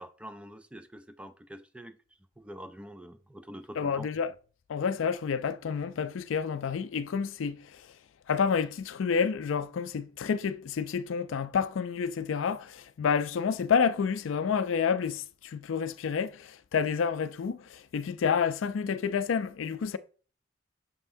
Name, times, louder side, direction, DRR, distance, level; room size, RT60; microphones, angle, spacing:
voice 1, 0.0-2.0 2.4-4.1, equal, 5° right, 0.4 m, -45 dB
voice 2, 3.8-4.3 4.7-7.8 8.3-20.0, left 6 dB, 85° left, 0.4 m, -29 dB
6.9 x 5.5 x 2.6 m
head